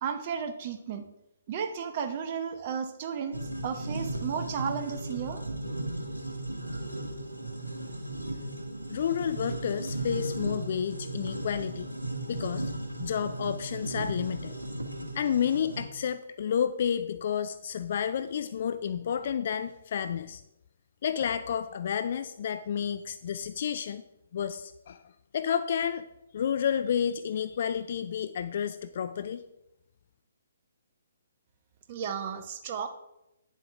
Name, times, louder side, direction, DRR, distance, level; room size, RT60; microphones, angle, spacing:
voice 1, 0.0-1.1 1.5-5.4 31.9-32.9, right 7 dB, 35° right, 7 dB, 0.9 m, -34 dB
sound 1, 3.3-15.8, right 1 dB, 85° right, 1.4 m, -36 dB
voice 2, 8.9-11.9 12.3-12.7 13.0-14.5 15.1-20.4 21.0-24.0 24.3-25.0 25.3-26.0 26.3-29.4, left 8 dB, 45° left, 11 dB, 0.4 m, -30 dB
9.7 x 7.2 x 3.5 m, 0.89 s
figure-of-eight pair, 130°, 0 cm